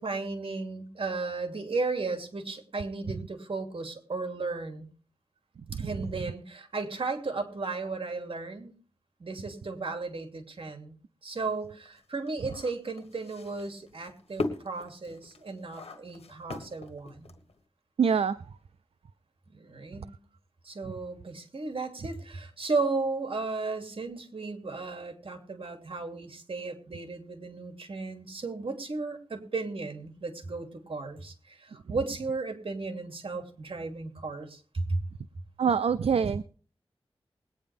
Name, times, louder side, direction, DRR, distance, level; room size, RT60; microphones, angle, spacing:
voice 1, 0.0-4.9 5.7-8.7 9.2-11.0 11.2-17.3 19.5-20.1 20.6-35.0, right 3 dB, 65° right, 5 dB, 2.8 m, -35 dB
sound 1, 11.4-17.6, left 3 dB, 90° left, 1.6 m, -39 dB
voice 2, 18.0-18.4 35.6-36.4, right 6 dB, 80° right, 14 dB, 0.5 m, -25 dB
20.5 x 9.5 x 3.5 m, 0.43 s
wide cardioid pair, 75°, 10 cm